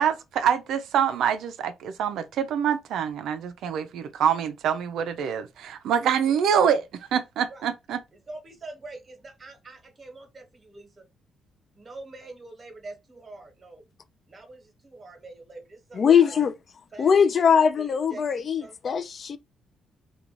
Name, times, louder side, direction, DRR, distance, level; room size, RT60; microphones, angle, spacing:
voice 1, 0.0-8.0, right 8 dB, 75° right, 0.3 m, -25 dB
voice 2, 8.1-11.0 11.7-13.9 14.3-16.5 16.9-17.1 17.6-18.8, right 2 dB, 35° right, 1.0 m, -44 dB
voice 3, 15.9-16.5 17.0-19.4, left 7 dB, 50° left, 0.3 m, -21 dB
2.4 x 2.2 x 2.9 m
cardioid pair, 90°, 0 cm